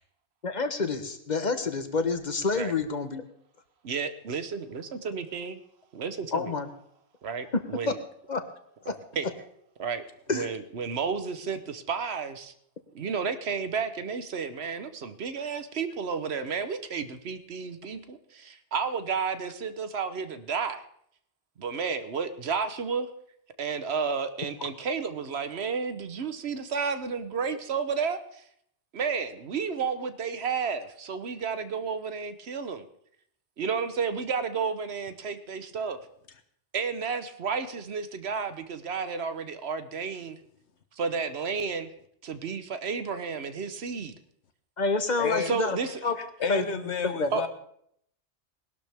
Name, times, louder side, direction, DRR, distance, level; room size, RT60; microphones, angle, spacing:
voice 1, 0.4-3.2 6.3-6.7 7.9-8.0 8.3-8.4 8.9-9.0 10.3-10.5 44.8-45.8 46.0-46.2 46.5-47.3, left 3 dB, 40° left, 9 dB, 1.1 m, -28 dB
voice 2, 3.8-5.6 5.9-6.5 7.2-8.0 8.9-9.3 9.8-10.0 10.3-12.5 12.9-20.8 21.6-23.1 23.6-28.4 28.9-32.8 33.6-36.0 36.7-40.4 41.0-41.9 42.2-44.1 45.4-46.0 47.3-47.5, right 5 dB, 70° right, 11 dB, 1.1 m, -32 dB
voice 3, 45.2-45.5 46.2-47.5, left 5 dB, 75° left, 9 dB, 1.4 m, -31 dB
19.5 x 12.0 x 3.5 m, 0.69 s
omnidirectional pair, 1.2 m